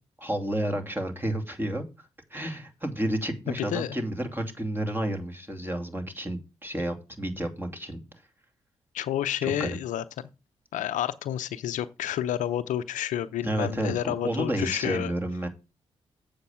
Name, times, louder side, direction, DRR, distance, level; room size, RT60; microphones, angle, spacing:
voice 1, 0.2-1.9 2.3-8.0 9.4-9.8 13.4-15.5, right 1 dB, 15° right, 2.5 m, -31 dB
voice 2, 3.5-4.0 8.9-10.3 10.7-15.1, left 11 dB, 80° left, 0.6 m, -30 dB
7.8 x 5.2 x 7.3 m
supercardioid pair, 45°, 13 cm